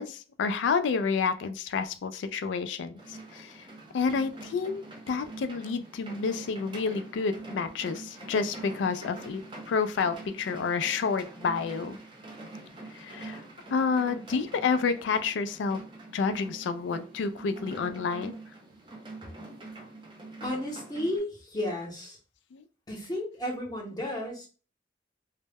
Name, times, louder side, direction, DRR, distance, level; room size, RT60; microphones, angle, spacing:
voice 1, 0.0-3.5 3.9-4.8 5.1-9.4 9.7-12.0 13.0-13.4 13.7-15.8 16.1-18.3 22.5-22.6, left 5 dB, 80° left, 11 dB, 0.3 m, -29 dB
sound 1, 3.0-21.2, right 2 dB, 25° right, 0.6 m, -45 dB
voice 2, 20.4-22.2 22.9-24.5, left 1 dB, 20° left, -1 dB, 0.7 m, -33 dB
2.1 x 2.0 x 3.4 m, 0.35 s
head